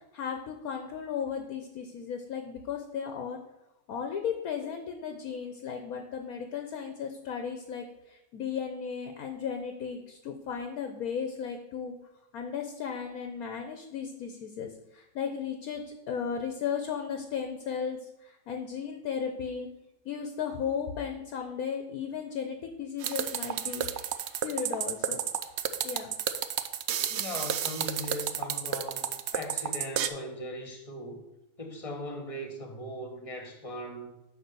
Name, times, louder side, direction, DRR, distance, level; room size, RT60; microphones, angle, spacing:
voice 1, 0.1-3.4 3.9-7.8 8.3-11.9 12.3-14.7 14.9-18.0 18.5-19.7 20.1-23.8 24.4-25.2 25.8-26.2, left 7 dB, 65° left, 5 dB, 1.2 m, -35 dB
sound 1, 23.0-30.1, right 9 dB, 85° right, 0.5 m, -31 dB
voice 2, 27.1-31.2 31.6-34.2, left 1 dB, 20° left, 4 dB, 1.2 m, -39 dB
10.0 x 3.6 x 6.8 m, 0.92 s
omnidirectional pair, 1.8 m